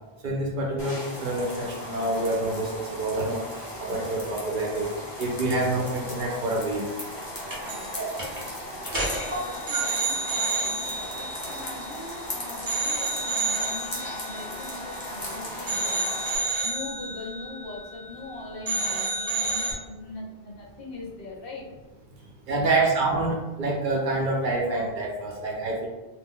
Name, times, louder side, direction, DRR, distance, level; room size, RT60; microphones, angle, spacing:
voice 1, 0.2-3.4 3.8-4.9 5.2-6.9 8.0-8.1 9.3-9.4 9.7-9.8 22.5-25.9, right 2 dB, 60° right, -1 dB, 0.6 m, -27 dB
sound 1, 0.8-16.4, equal, 30° left, 0.6 m, -37 dB
sound 2, 7.5-7.9 8.2-8.4 8.9-12.2 12.7-15.3 15.7-18.3 18.7-19.7, right 3 dB, 20° right, 0.7 m, -30 dB
voice 2, 8.9-16.2 16.6-21.6 22.6-22.8, left 3 dB, 65° left, -3 dB, 0.9 m, -40 dB
2.5 x 2.1 x 3.6 m, 1.1 s
omnidirectional pair, 1.1 m